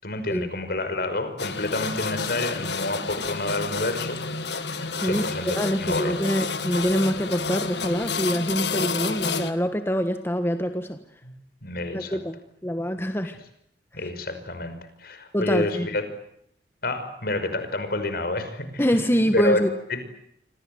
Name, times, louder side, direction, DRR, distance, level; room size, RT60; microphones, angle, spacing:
voice 1, 0.0-4.2 5.0-5.5 5.8-6.1 11.2-11.3 11.6-12.2 13.9-14.8 15.0-16.0 16.8-18.8 19.3-19.6 19.9-20.0, left 2 dB, 60° left, 9 dB, 5.4 m, -28 dB
sound 1, 1.4-9.5, left 4 dB, 75° left, 2.0 m, -30 dB
voice 2, 5.6-11.0 11.9-13.4 14.0-14.1 15.3-15.9 18.8-19.7, equal, 15° left, 7 dB, 1.5 m, -25 dB
28.5 x 25.5 x 7.9 m, 0.74 s
head